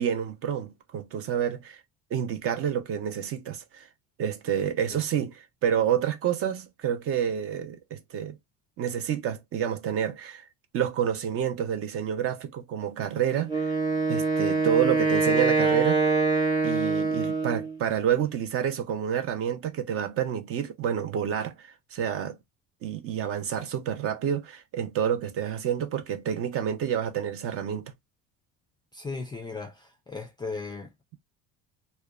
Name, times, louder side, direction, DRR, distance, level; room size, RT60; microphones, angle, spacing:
voice 1, 0.0-1.8 2.1-3.9 4.2-8.4 8.8-10.4 10.7-13.7 14.1-16.1 16.6-22.4 22.8-27.9, right 9 dB, 45° right, 0.5 m, -29 dB
Wind instrument woodwind instrument, 13.5-17.7, right 4 dB, 10° right, 0.8 m, -24 dB
voice 2, 28.9-30.9, left 4 dB, 15° left, 0.3 m, -36 dB
2.8 x 2.1 x 2.2 m
cardioid pair, 150°, 33 cm